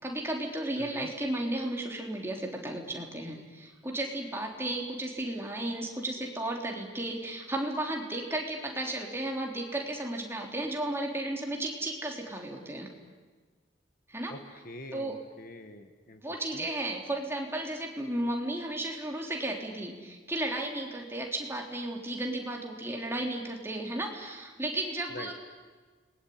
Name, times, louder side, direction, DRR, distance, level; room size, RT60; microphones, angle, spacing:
voice 1, 0.0-12.9 14.1-14.3 14.9-15.2 16.2-25.3, right 1 dB, 10° right, 0 dB, 3.6 m, -34 dB
voice 2, 0.8-1.1 14.3-16.2 16.5-16.7 25.1-25.3, left 1 dB, 45° left, 7 dB, 1.7 m, -45 dB
29.0 x 21.0 x 9.5 m, 1.4 s
head